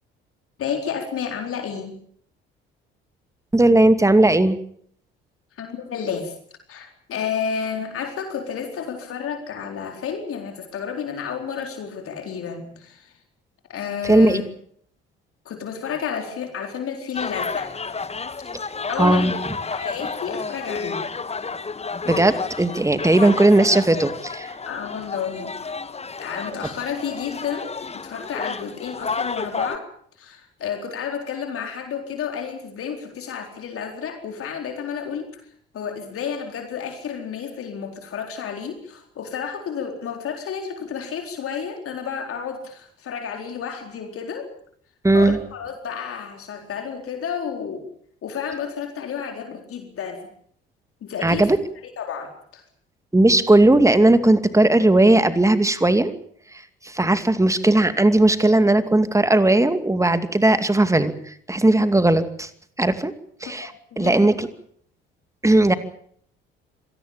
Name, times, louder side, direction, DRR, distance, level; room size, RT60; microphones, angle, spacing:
voice 1, 0.6-2.0 5.6-6.3 6.7-13.1 13.7-14.4 15.5-17.7 18.9-19.3 19.7-21.0 24.7-25.6 26.2-27.7 28.0-29.9 30.2-35.3 35.7-44.5 45.1-47.9 48.2-50.3 51.0-51.5 52.0-52.6 63.5-64.4, left 7 dB, 50° left, 4 dB, 4.2 m, -31 dB
voice 2, 3.5-4.6 14.0-14.4 19.0-19.4 22.0-24.5 45.0-45.4 51.2-51.6 53.1-56.1 56.5-62.5 62.8-63.1 63.4-64.5 65.4-65.7, right 2 dB, 10° right, 11 dB, 2.4 m, -17 dB
sound 1, 17.1-29.8, left 4 dB, 20° left, 1.4 m, -31 dB
25.5 x 18.0 x 7.3 m, 0.62 s
figure-of-eight pair, 50°, 30 cm